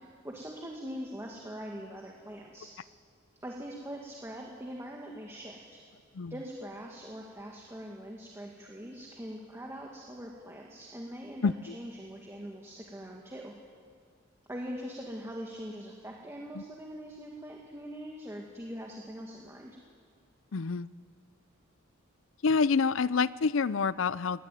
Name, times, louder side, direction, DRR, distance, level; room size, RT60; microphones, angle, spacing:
voice 1, 0.2-2.7 3.4-5.8 6.3-13.5 14.5-19.8, equal, 15° right, -1 dB, 1.9 m, -42 dB
voice 2, 11.4-11.7 20.5-20.9 22.4-24.4, left 5 dB, 65° left, 18 dB, 0.5 m, -27 dB
23.5 x 18.5 x 9.2 m, 2.2 s
head